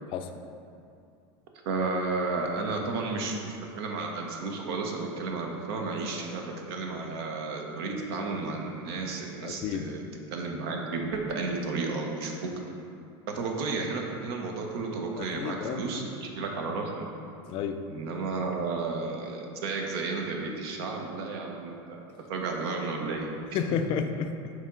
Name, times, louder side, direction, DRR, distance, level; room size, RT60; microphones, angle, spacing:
voice 1, 1.6-10.0 10.3-12.5 13.3-17.1 17.9-22.0 22.3-23.6, right 3 dB, 75° right, 1 dB, 0.9 m, -32 dB
voice 2, 9.4-9.9 15.2-15.8 17.5-17.8 23.5-24.5, left 7 dB, 40° left, 7 dB, 0.4 m, -31 dB
6.5 x 4.3 x 3.8 m, 2.5 s
supercardioid pair, 135°, 13 cm